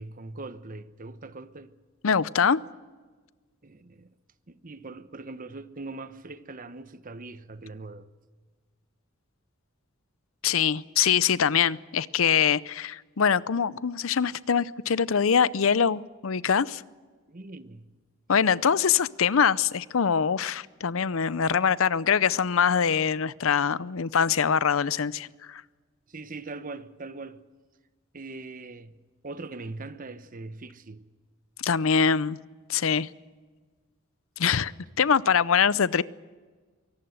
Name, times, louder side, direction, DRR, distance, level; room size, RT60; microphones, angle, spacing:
voice 1, 0.0-1.7 3.6-4.1 4.5-8.1 17.3-17.9 18.3-18.7 26.1-27.4 28.1-29.0 29.2-31.0, right 3 dB, 40° right, 1.0 m, -41 dB
voice 2, 2.0-2.6 10.4-16.8 18.3-25.6 31.6-32.4 32.7-33.1 34.4-34.7 35.0-36.0, left 7 dB, 75° left, 0.6 m, -23 dB
23.5 x 18.0 x 7.9 m
head